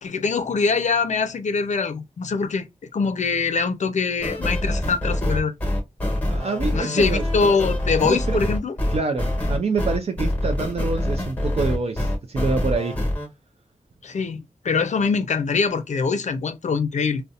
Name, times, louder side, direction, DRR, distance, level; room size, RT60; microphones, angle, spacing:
voice 1, 0.0-2.7 2.9-5.5 6.7-8.7 14.0-17.2, left 5 dB, 65° left, 0.5 m, -23 dB
sound 1, 4.2-13.3, left 1 dB, 10° left, 1.2 m, -25 dB
voice 2, 6.3-7.2 8.0-8.4 8.9-13.0, right 4 dB, 50° right, 0.4 m, -26 dB
2.7 x 2.1 x 2.4 m
wide cardioid pair, 70°, 13 cm